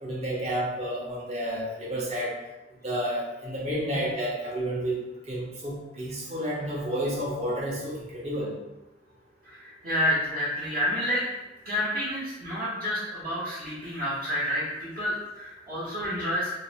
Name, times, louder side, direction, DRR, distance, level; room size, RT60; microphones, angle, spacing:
voice 1, 0.0-2.4 2.8-5.0 5.3-8.5 10.0-10.1, equal, 40° right, -5 dB, 0.7 m, -30 dB
voice 2, 9.5-11.2 11.6-16.5, equal, 60° right, -11 dB, 0.9 m, -29 dB
2.5 x 2.0 x 2.8 m, 0.99 s
head